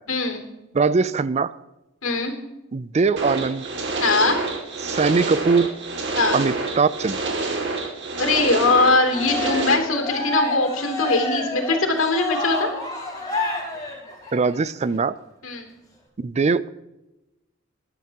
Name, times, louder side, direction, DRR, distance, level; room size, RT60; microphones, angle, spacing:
voice 1, 0.1-0.4 2.0-2.3 4.0-4.4 6.2-6.4 8.2-12.7 15.4-15.7, left 3 dB, 85° left, 3 dB, 3.1 m, -21 dB
voice 2, 0.7-1.5 2.7-3.7 4.8-5.7 6.3-7.2 14.3-15.2 16.2-16.7, right 4 dB, 35° right, 17 dB, 0.4 m, -21 dB
sound 1, 3.2-9.7, right 3 dB, 60° right, 2.5 m, -27 dB
Cheering, 9.1-14.5, left 2 dB, 20° left, 4.5 m, -29 dB
20.0 x 12.0 x 3.0 m, 0.97 s
head